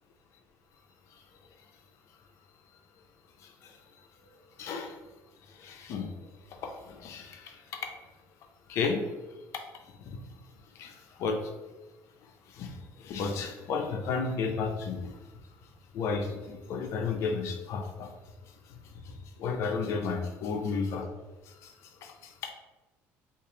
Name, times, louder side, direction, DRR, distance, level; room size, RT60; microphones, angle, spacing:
voice 1, 3.4-3.7 4.6-5.0 5.5-6.1 6.5-7.8 8.7-9.0 9.5-10.2 10.7-11.5 12.5-15.1 15.9-18.1 19.0-21.1 21.5-21.7 22.0-22.5, left 5 dB, 55° left, 3 dB, 0.6 m, -33 dB
3.1 x 2.5 x 3.8 m, 1.1 s
cardioid pair, 145°, 6 cm